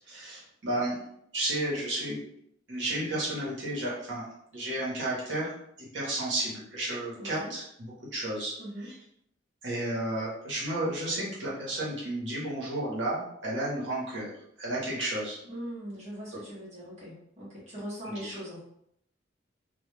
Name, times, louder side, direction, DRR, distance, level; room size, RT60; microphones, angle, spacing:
voice 1, 0.1-1.0 1.3-2.2 2.7-4.2 4.5-5.5 5.8-8.5 8.8-9.0 9.6-14.3 14.6-15.4, right 1 dB, 70° right, -6 dB, 0.9 m, -32 dB
voice 2, 7.2-7.5 8.6-8.9 15.4-18.6, equal, 35° right, -7 dB, 0.9 m, -40 dB
2.1 x 2.1 x 3.2 m, 0.73 s
head